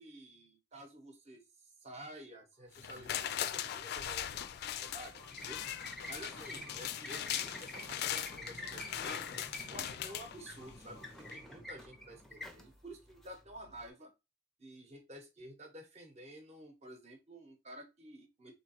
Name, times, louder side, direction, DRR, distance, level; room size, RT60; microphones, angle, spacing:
voice 1, 0.0-1.4 1.8-4.4 4.7-5.6 6.1-9.4 9.7-14.1 14.6-18.5, right 1 dB, 35° right, 4 dB, 0.9 m, -51 dB
sound 1, 2.5-13.9, right 1 dB, 85° right, 2.0 m, -61 dB
sound 2, 2.7-10.9 11.3-11.4, left 11 dB, 55° left, 0.3 m, -40 dB
sound 3, 4.6-13.9, left 1 dB, ahead, 0.5 m, -49 dB
3.9 x 3.0 x 2.9 m, 0.24 s
head